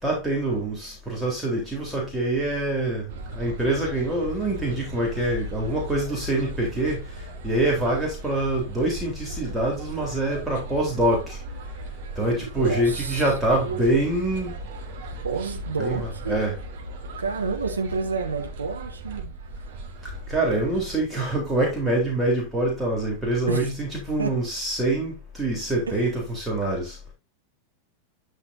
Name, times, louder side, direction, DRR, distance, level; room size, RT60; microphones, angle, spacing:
voice 1, 0.0-7.0 7.4-11.4 12.2-14.6 15.8-16.5 20.0-27.0, right 1 dB, 5° right, 3.8 m, -25 dB
sound 1, 3.1-21.1, right 1 dB, 55° right, 3.0 m, -37 dB
voice 2, 12.3-13.2 13.6-13.9 15.2-16.4 17.2-19.3 23.5-23.7 24.2-24.3, right 5 dB, 75° right, 2.1 m, -29 dB
12.5 x 5.6 x 2.7 m
figure-of-eight pair, 90°, 0 cm